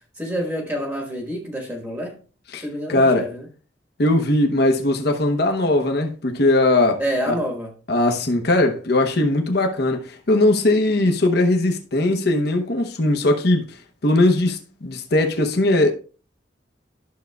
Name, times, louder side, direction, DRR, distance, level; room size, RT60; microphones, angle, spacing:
voice 1, 0.2-2.2 2.6-3.5 7.0-7.7, equal, 15° right, 1.4 m, -27 dB
voice 2, 2.5-3.3 4.0-7.4 7.9-13.8 14.0-15.9, left 2 dB, 60° left, 0.9 m, -19 dB
11.5 x 6.4 x 2.3 m
head